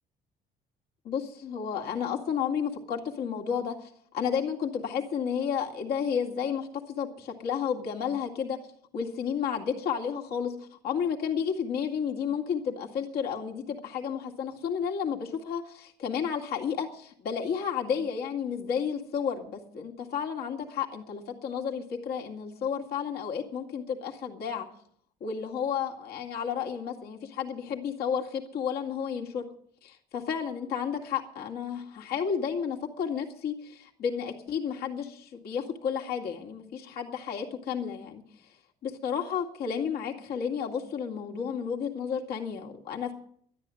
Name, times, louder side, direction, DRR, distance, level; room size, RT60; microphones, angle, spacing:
voice 1, 1.0-8.6 8.9-24.7 25.2-29.5 30.1-38.2 38.8-43.1, left 7 dB, 70° left, 0 dB, 2.2 m, -32 dB
12.5 x 10.5 x 7.7 m, 0.63 s
cardioid pair, 110°, 17 cm